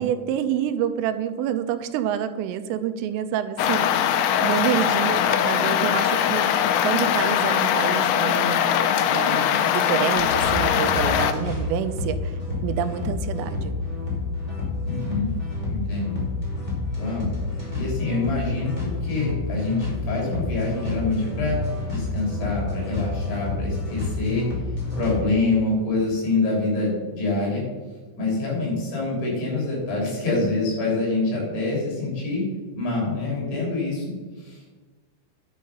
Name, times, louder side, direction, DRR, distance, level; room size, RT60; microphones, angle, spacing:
voice 1, 0.0-8.7 9.1-12.4 12.6-13.7, right 9 dB, 85° right, 11 dB, 3.2 m, -28 dB
sound 1, 3.6-11.3, left 9 dB, 90° left, 3.3 m, -21 dB
sound 2, 10.1-25.2, left 3 dB, 10° left, 3.0 m, -29 dB
voice 2, 14.9-15.3 15.7-16.2 17.0-17.3 17.8-21.6 21.9-24.5 25.0-27.6 28.2-32.4 32.8-34.0 34.4-34.7, left 3 dB, 55° left, -3 dB, 5.3 m, -26 dB
10.5 x 7.5 x 5.5 m, 1.4 s
omnidirectional pair, 5.7 m